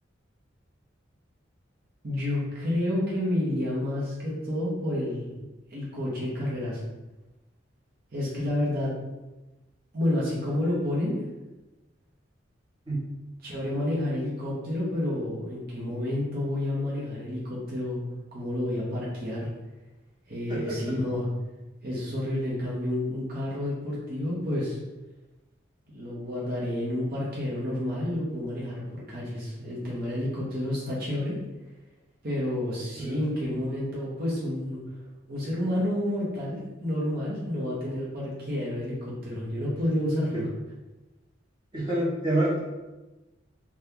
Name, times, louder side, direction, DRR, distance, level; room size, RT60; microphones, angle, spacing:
voice 1, 2.0-6.8 8.1-8.9 9.9-11.2 13.4-18.0 18.3-19.5 20.3-21.3 21.8-24.8 25.9-31.4 32.2-34.8 35.3-40.5, left 1 dB, 50° right, -6 dB, 0.8 m, -30 dB
voice 2, 20.5-20.9 33.0-33.3 40.2-40.4 41.7-42.6, right 1 dB, 25° right, -7 dB, 1.0 m, -28 dB
2.8 x 2.3 x 3.5 m, 1.1 s
head